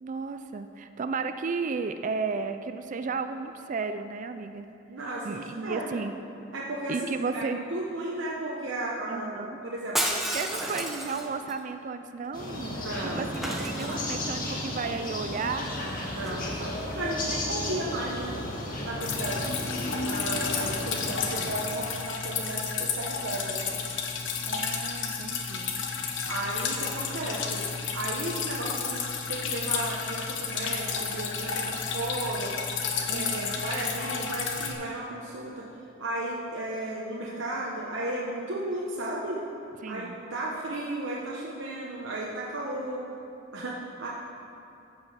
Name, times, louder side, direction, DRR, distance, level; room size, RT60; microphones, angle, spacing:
voice 1, 0.0-4.7 5.2-6.1 6.9-7.6 9.1-9.6 10.3-15.7 24.5-25.9 33.1-33.6 39.8-40.2, right 4 dB, 40° right, 9 dB, 0.4 m, -34 dB
voice 2, 4.9-6.0 6.5-7.0 7.3-10.1 10.6-10.7 12.7-13.3 13.6-14.2 16.1-18.3 18.8-19.6 20.0-23.7 26.3-27.6 27.9-29.0 29.3-32.5 33.1-35.6 36.0-39.4 39.9-43.0 43.5-44.1, right 1 dB, 80° right, -4 dB, 1.1 m, -34 dB
Shatter, 9.9-11.5 13.3-14.4 16.2-16.5, right 1 dB, ahead, 0.9 m, -31 dB
sound 1, 12.3-21.5, left 1 dB, 50° left, 1.7 m, -34 dB
Drip, 19.0-34.7, left 6 dB, 70° left, 1.1 m, -32 dB
14.5 x 5.6 x 5.6 m, 2.8 s
head